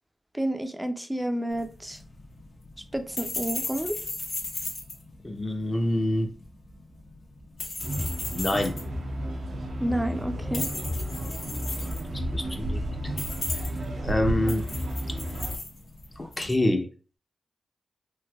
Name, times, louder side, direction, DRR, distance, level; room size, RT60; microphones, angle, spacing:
voice 1, 0.3-2.0 2.9-4.0 9.8-10.7, right 1 dB, 10° right, 0.4 m, -30 dB
sound 1, 1.5-16.6, left 2 dB, 75° left, 0.9 m, -37 dB
voice 2, 5.2-6.3 8.3-8.7 12.1-12.8 14.0-14.6 16.2-16.9, left 1 dB, 30° left, 0.6 m, -26 dB
sound 2, 7.8-15.6, equal, 85° right, 0.7 m, -32 dB
3.2 x 2.7 x 2.3 m
cardioid pair, 45°, 0 cm